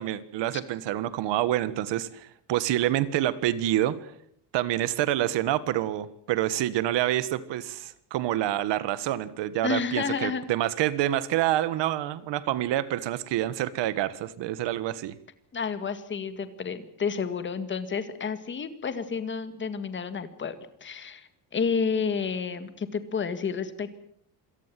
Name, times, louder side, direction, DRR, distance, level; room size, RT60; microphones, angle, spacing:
voice 1, 0.0-4.1 4.5-15.2, right 13 dB, 85° right, 16 dB, 1.7 m, -27 dB
voice 2, 9.6-10.4 15.5-20.5 20.8-24.1, left 6 dB, 25° left, 11 dB, 1.9 m, -30 dB
27.0 x 18.5 x 7.7 m, 0.68 s
cardioid pair, 175°, 41 cm